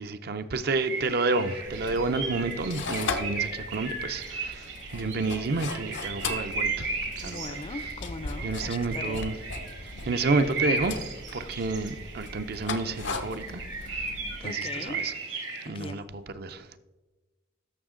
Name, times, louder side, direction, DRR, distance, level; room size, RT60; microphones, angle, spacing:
voice 1, 0.0-7.6 8.4-9.3 10.1-13.6 13.9-14.1 14.4-15.1 15.7-16.0 16.3-16.8, right 3 dB, 60° right, 0.5 m, -30 dB
sound 1, 0.7-15.7, right 3 dB, 80° right, 2.1 m, -36 dB
sound 2, 1.6-14.4, left 3 dB, 85° left, 0.8 m, -38 dB
voice 2, 7.2-9.3 14.4-15.1 15.7-16.1, left 3 dB, 30° left, 0.4 m, -40 dB
13.5 x 5.7 x 3.7 m
head